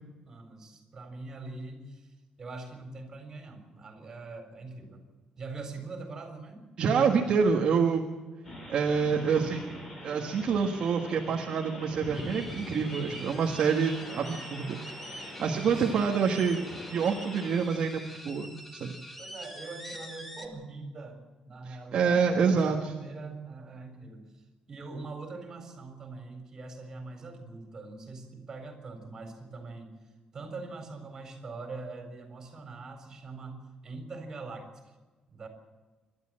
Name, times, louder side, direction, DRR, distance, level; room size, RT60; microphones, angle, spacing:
voice 1, 0.3-5.0 5.4-6.6 15.7-16.1 19.2-29.9 30.3-34.7 35.3-35.5, right 3 dB, 25° right, 5 dB, 4.1 m, -43 dB
voice 2, 6.8-8.1 8.7-9.8 10.0-14.8 15.0-16.6 16.9-19.0 21.6-22.9, right 6 dB, 45° right, 1 dB, 1.6 m, -27 dB
sound 1, 8.4-17.6, equal, 30° left, 5.5 m, -43 dB
sound 2, 12.1-20.5, equal, 5° left, 1.9 m, -45 dB
28.5 x 12.5 x 7.6 m, 1.3 s
cardioid pair, 180°, 2 cm